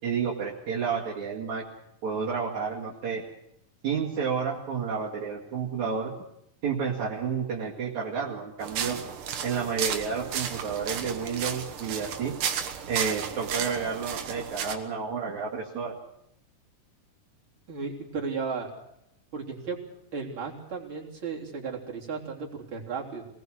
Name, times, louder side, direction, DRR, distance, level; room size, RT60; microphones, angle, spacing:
voice 1, 0.0-1.6 2.0-3.2 3.8-6.1 6.6-9.0 9.4-12.4 12.9-15.9, right 6 dB, 60° right, -4 dB, 3.4 m, -30 dB
sound 1, 8.6-14.8, right 8 dB, 85° right, 3.0 m, -33 dB
voice 2, 17.7-18.7 19.3-19.8 20.1-23.3, right 5 dB, 40° right, -2 dB, 4.1 m, -34 dB
26.0 x 19.5 x 6.4 m, 0.79 s
omnidirectional pair, 3.7 m